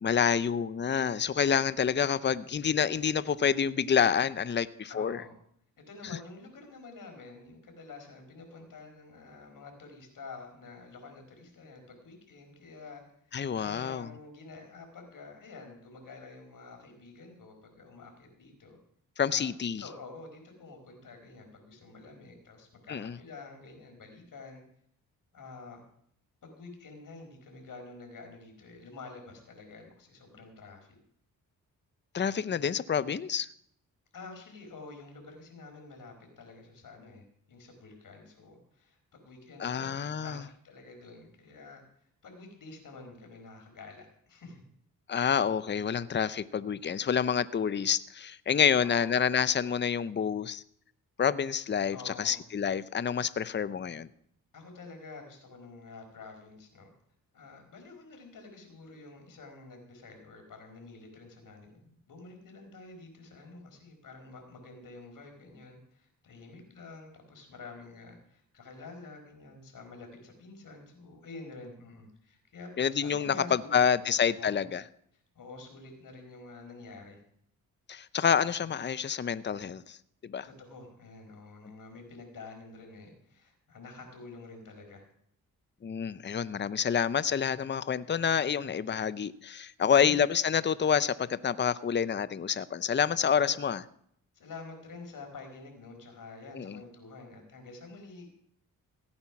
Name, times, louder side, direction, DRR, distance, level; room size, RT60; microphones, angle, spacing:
voice 1, 0.0-5.2 13.3-14.1 19.2-19.8 22.9-23.1 32.1-33.5 39.6-40.4 45.1-50.6 51.2-54.1 72.8-74.8 77.9-80.0 80.2-80.5 85.8-93.8 96.5-96.8, left 7 dB, 30° left, 16 dB, 0.6 m, -28 dB
voice 2, 4.9-5.4 5.9-18.8 19.3-19.5 19.8-24.6 25.3-25.8 26.4-31.0 34.1-41.8 42.2-44.6 48.7-49.1 51.9-52.4 54.5-56.9 57.3-74.1 74.4-74.6 75.1-77.2 80.4-85.0 89.8-90.2 94.3-98.3, left 3 dB, 65° left, 3 dB, 4.5 m, -48 dB
16.5 x 8.8 x 5.9 m, 0.68 s
cardioid pair, 70°, 35 cm